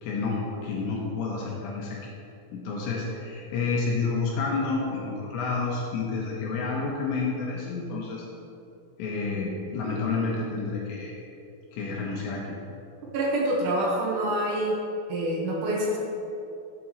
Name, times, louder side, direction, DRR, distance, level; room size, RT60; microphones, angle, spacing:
voice 1, 0.0-2.1 2.5-8.2 9.0-11.2 11.7-12.6, left 4 dB, 75° left, -3 dB, 2.9 m, -29 dB
voice 2, 13.1-14.8 15.1-16.0, right 1 dB, 70° right, -4 dB, 3.4 m, -26 dB
11.5 x 8.6 x 3.1 m, 2.7 s
omnidirectional pair, 5.8 m